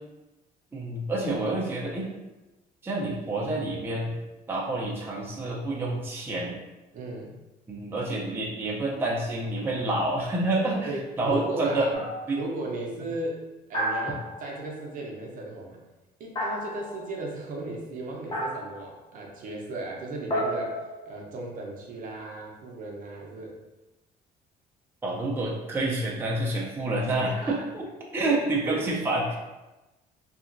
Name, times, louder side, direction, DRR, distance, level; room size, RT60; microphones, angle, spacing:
voice 1, 0.7-2.1 2.8-4.1 4.5-6.6 7.7-11.9 12.3-12.4 25.0-27.8 28.1-29.4, right 2 dB, 15° right, -4 dB, 0.5 m, -28 dB
voice 2, 6.9-7.4 10.9-11.9 12.3-15.8 16.2-20.8 21.1-23.6 27.2-27.6 28.6-28.9, right 2 dB, 55° right, -1 dB, 0.6 m, -36 dB
sound 1, 11.9-12.4 13.7-14.7 16.4-17.1 18.3-18.9 20.3-21.6, equal, 30° left, 0.7 m, -32 dB
2.8 x 2.4 x 2.5 m, 1.1 s
cardioid pair, 110°, 17 cm